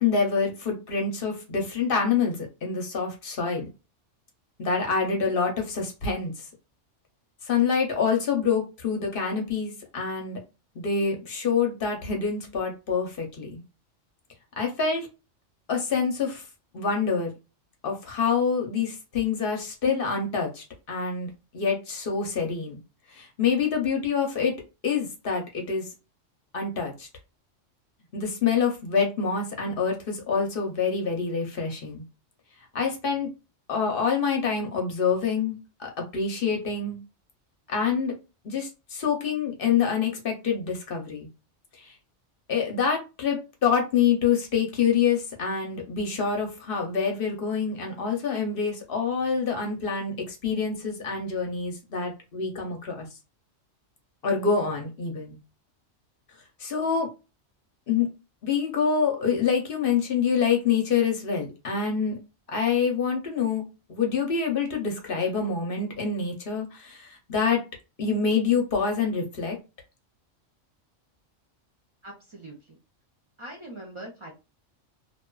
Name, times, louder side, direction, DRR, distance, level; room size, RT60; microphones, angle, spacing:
voice 1, 0.0-3.7 4.6-6.4 7.5-10.4 10.8-13.6 14.6-15.1 15.7-16.4 16.7-17.3 17.8-22.8 23.1-24.5 24.8-25.8 26.5-27.1 28.1-32.0 32.7-33.3 33.7-37.0 37.7-38.1 38.4-41.3 41.8-41.9 42.5-53.1 54.2-55.4 56.6-57.1 57.9-58.1 58.4-62.2 62.5-63.6 63.9-67.6 68.0-69.6, left 6 dB, 55° left, 2 dB, 0.8 m, -26 dB
voice 2, 72.0-72.8 73.4-74.3, right 1 dB, 40° right, -2 dB, 0.4 m, -42 dB
2.6 x 2.3 x 2.2 m, 0.29 s
omnidirectional pair, 1.3 m